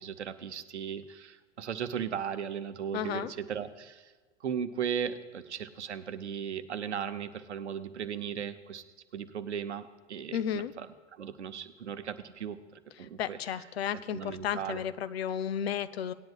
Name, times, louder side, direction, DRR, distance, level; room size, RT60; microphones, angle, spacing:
voice 1, 0.0-4.1 4.4-8.8 9.1-10.9 11.1-12.6 13.0-13.4 14.1-14.8, right 8 dB, 75° right, 11 dB, 0.8 m, -37 dB
voice 2, 2.9-3.3 10.3-10.7 13.2-16.1, left 9 dB, 60° left, 13 dB, 0.6 m, -33 dB
18.5 x 10.0 x 2.4 m, 1.3 s
figure-of-eight pair, 95°, 34 cm